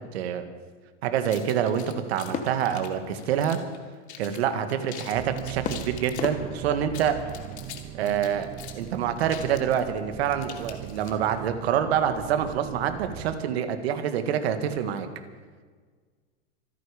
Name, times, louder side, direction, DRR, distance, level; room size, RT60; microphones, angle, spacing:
voice 1, 0.1-0.4 1.0-3.6 4.2-7.2 7.9-8.5 8.8-15.1, right 9 dB, 70° right, 8 dB, 2.0 m, -26 dB
sound 1, 1.2-3.8 4.1-4.4 4.7-6.3 6.8-11.4, left 10 dB, 80° left, 2.6 m, -44 dB
sound 2, 2.3-3.9 5.6-7.7, left 6 dB, 25° left, 1.3 m, -37 dB
sound 3, 5.1-13.4, right 13 dB, 20° right, 0.4 m, -40 dB
26.5 x 9.9 x 5.2 m, 1.5 s
supercardioid pair, 145°, 33 cm